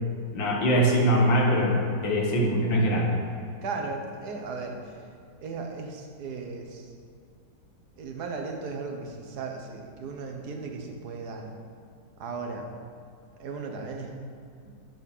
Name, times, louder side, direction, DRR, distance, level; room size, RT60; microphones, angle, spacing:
voice 1, 0.3-3.1, equal, 90° left, -1 dB, 2.1 m, -22 dB
voice 2, 3.6-5.0 5.4-6.9 8.0-11.5 12.2-12.7 13.4-14.2 14.6-14.7, right 4 dB, 60° right, 2 dB, 1.5 m, -36 dB
8.4 x 6.8 x 5.4 m, 2.3 s
omnidirectional pair, 2.0 m